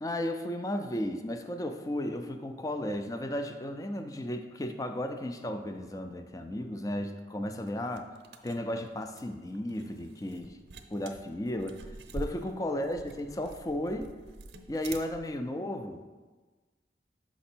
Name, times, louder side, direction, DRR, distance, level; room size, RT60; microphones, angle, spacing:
voice 1, 0.0-8.1 8.4-10.6 10.9-11.8 12.1-14.1 14.7-16.1, left 1 dB, 20° left, 7 dB, 0.4 m, -34 dB
sound 1, 7.7-15.4, right 2 dB, 75° right, 0.6 m, -46 dB
5.9 x 5.2 x 4.4 m, 1.3 s
head